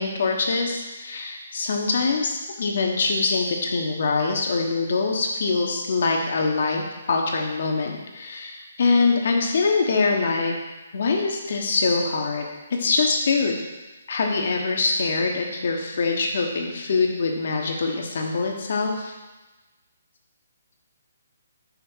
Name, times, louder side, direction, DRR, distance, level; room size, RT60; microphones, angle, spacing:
voice 1, 0.0-6.8 7.1-10.5 10.9-12.4 12.7-13.6 14.1-19.1, left 4 dB, 55° left, 1 dB, 1.1 m, -24 dB
6.0 x 3.8 x 5.5 m, 1.2 s
figure-of-eight pair, 135°, 0 cm